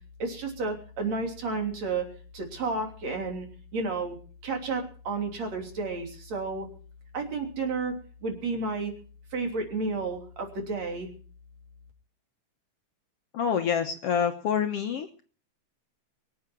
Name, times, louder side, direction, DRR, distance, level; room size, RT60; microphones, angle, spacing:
voice 1, 0.2-2.1 2.3-3.5 3.7-4.2 4.4-6.7 7.1-7.9 8.2-8.9 9.3-11.1, right 3 dB, 60° right, 3 dB, 4.3 m, -31 dB
voice 2, 13.3-15.1, left 7 dB, 65° left, 6 dB, 1.7 m, -27 dB
23.5 x 8.6 x 6.1 m, 0.41 s
omnidirectional pair, 3.5 m